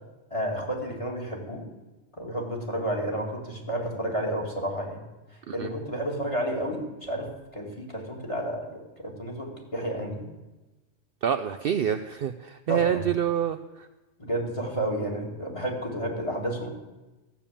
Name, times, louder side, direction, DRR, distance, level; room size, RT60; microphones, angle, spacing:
voice 1, 0.3-1.6 2.2-5.0 5.5-8.7 9.0-10.3 12.7-13.0 14.2-16.7, right 1 dB, 25° left, 1 dB, 2.4 m, -31 dB
voice 2, 11.2-13.9, right 9 dB, 60° right, 10 dB, 0.7 m, -27 dB
14.5 x 7.2 x 8.5 m, 1.1 s
omnidirectional pair, 1.3 m